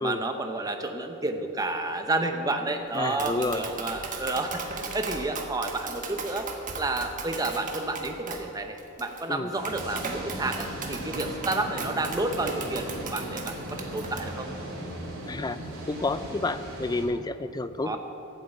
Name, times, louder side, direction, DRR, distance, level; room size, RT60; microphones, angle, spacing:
voice 1, 0.0-6.5 6.8-14.5 17.8-18.0, right 2 dB, 15° right, 5 dB, 0.8 m, -30 dB
voice 2, 2.9-3.7 9.3-9.5 15.3-15.6 15.9-18.0, left 2 dB, 20° left, 12 dB, 0.4 m, -29 dB
Tap, 2.9-14.2, right 4 dB, 40° right, 1.2 m, -37 dB
sound 1, 9.5-17.0, right 1 dB, 60° right, 3.2 m, -38 dB
12.5 x 7.5 x 8.0 m, 3.0 s
head